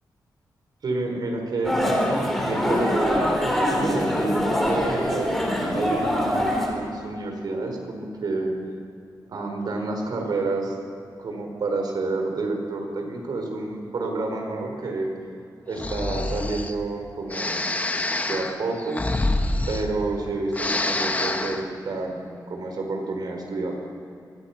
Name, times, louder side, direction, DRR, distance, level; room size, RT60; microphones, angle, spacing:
voice 1, 0.8-1.8 2.4-5.3 5.7-8.6 9.3-10.8 11.2-15.1 15.7-17.6 18.2-19.0 19.7-23.7, right 3 dB, 70° right, 3 dB, 4.4 m, -29 dB
sound 1, 1.6-6.7, equal, 5° left, 4.5 m, -23 dB
Breathing, 15.7-16.7 17.3-20.2 20.5-21.6, left 2 dB, 20° left, 1.4 m, -26 dB
24.0 x 23.0 x 5.9 m, 2.5 s
wide cardioid pair, 135°, 7 cm